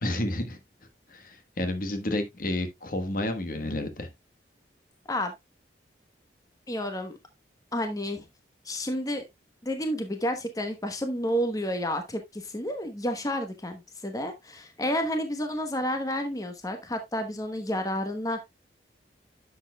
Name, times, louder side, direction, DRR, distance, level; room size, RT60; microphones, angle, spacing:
voice 1, 0.0-0.6 1.1-4.1, left 1 dB, 50° left, 1.3 m, -30 dB
voice 2, 6.7-7.2 7.7-8.2 8.6-9.2 9.6-18.5, equal, 20° left, 1.0 m, -30 dB
10.5 x 7.3 x 2.2 m
head